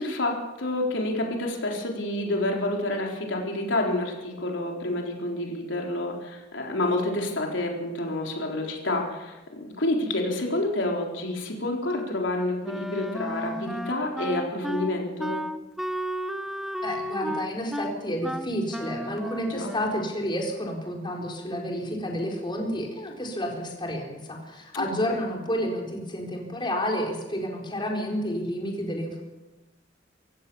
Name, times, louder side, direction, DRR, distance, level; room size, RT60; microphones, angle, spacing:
voice 1, 0.0-15.4 19.5-19.7 24.7-24.8, left 1 dB, 75° left, 0 dB, 4.0 m, -28 dB
Wind instrument woodwind instrument, 12.6-20.2, equal, ahead, 1.0 m, -33 dB
voice 2, 16.8-29.2, equal, 25° left, 0 dB, 4.2 m, -30 dB
26.5 x 16.0 x 7.1 m, 1.1 s
head